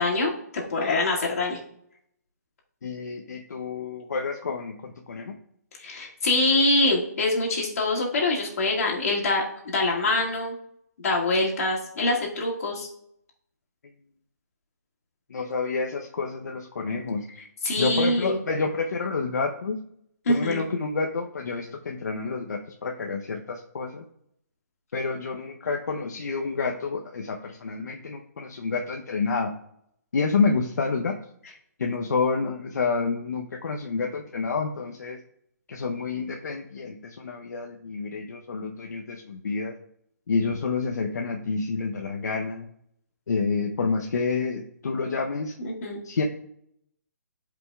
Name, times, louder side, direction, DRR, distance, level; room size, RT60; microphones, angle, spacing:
voice 1, 0.0-1.6 5.8-10.6 11.0-12.9 17.3-18.4 20.3-20.6 45.6-46.0, left 2 dB, 55° left, -2 dB, 2.1 m, -25 dB
voice 2, 2.8-5.4 15.3-17.2 17.8-19.8 20.3-24.0 24.9-29.5 30.1-31.2 31.8-35.2 35.7-39.7 40.3-42.7 43.3-45.5 46.0-46.2, left 4 dB, 75° left, 2 dB, 0.7 m, -28 dB
11.0 x 5.1 x 2.3 m, 0.72 s
hypercardioid pair, 165°, 9 cm